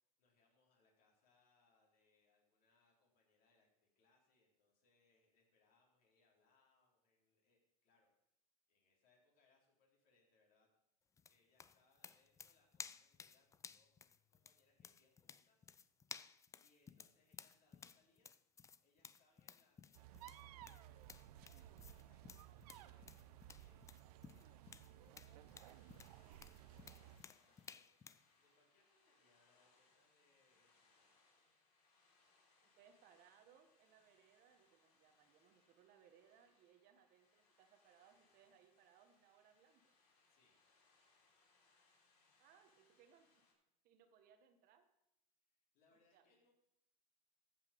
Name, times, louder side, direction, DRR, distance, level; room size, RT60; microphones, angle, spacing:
voice 1, 0.2-8.1 8.7-10.7 11.3-13.9 14.3-15.7 16.2-18.3 18.8-23.9 24.2-31.2 40.3-40.6 45.4-46.5, left 3 dB, 50° left, -2 dB, 4.2 m, -78 dB
sound 1, 11.2-28.3, left 6 dB, 15° left, 0.4 m, -57 dB
sound 2, 19.9-27.2, right 12 dB, 80° right, 0.6 m, -58 dB
sound 3, 24.6-43.5, left 3 dB, 80° left, 3.4 m, -76 dB
voice 2, 32.6-39.9 42.4-43.4 43.8-44.9 45.9-46.2, right 8 dB, 50° right, 7 dB, 1.4 m, -69 dB
15.0 x 5.7 x 5.2 m, 0.84 s
supercardioid pair, 115°, 20 cm